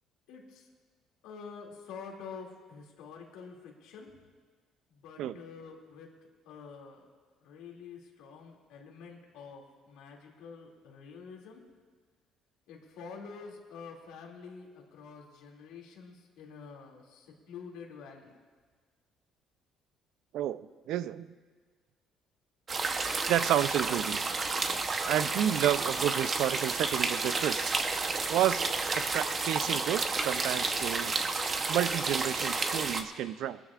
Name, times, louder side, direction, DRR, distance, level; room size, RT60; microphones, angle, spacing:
voice 1, 0.3-0.7 1.2-4.1 4.9-6.1 6.4-7.0 7.4-11.6 12.7-18.3, left 5 dB, 90° left, 0 dB, 2.5 m, -47 dB
voice 2, 20.3-21.3 23.3-24.2 25.0-27.7 28.3-28.7 28.9-31.2 31.7-33.6, right 11 dB, 70° right, 15 dB, 0.4 m, -30 dB
sound 1, 22.7-33.0, right 3 dB, 30° right, 0.9 m, -31 dB
21.5 x 13.0 x 2.5 m, 1.5 s
cardioid pair, 125°, 0 cm